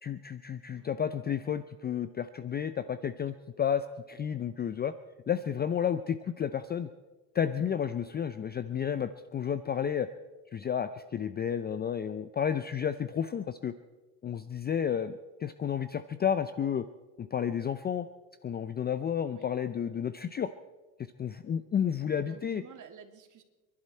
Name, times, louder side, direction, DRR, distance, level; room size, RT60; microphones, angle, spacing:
voice 1, 0.0-4.9 5.3-6.9 7.3-10.1 10.5-13.7 14.2-16.8 17.2-18.1 18.4-20.5 21.2-22.6, left 8 dB, 20° left, 13 dB, 0.5 m, -31 dB
voice 2, 22.1-23.4, right 7 dB, 40° right, 5 dB, 2.6 m, -51 dB
29.0 x 11.5 x 4.3 m, 1.2 s
supercardioid pair, 105°, 49 cm